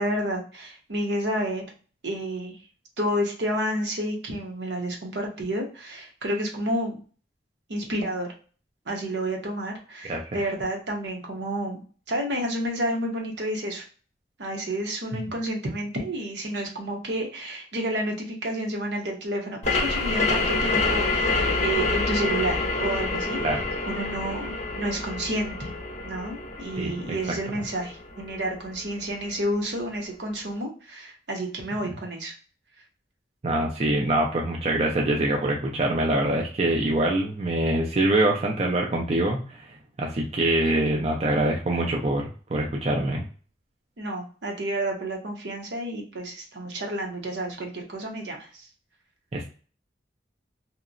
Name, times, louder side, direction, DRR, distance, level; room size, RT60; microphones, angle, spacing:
voice 1, 0.0-1.7 2.0-2.6 3.0-7.0 7.7-8.3 8.9-13.8 14.4-23.4 23.9-25.7 26.0-32.3 44.0-48.7, right 1 dB, 75° right, 1 dB, 0.8 m, -30 dB
voice 2, 10.1-10.5 23.4-23.6 26.8-26.9 33.4-39.7 40.0-43.2 49.3-49.5, right 1 dB, 35° right, 0 dB, 0.4 m, -24 dB
sound 1, 19.6-29.0, left 3 dB, 40° left, 0.5 m, -27 dB
2.8 x 2.1 x 2.4 m, 0.39 s
head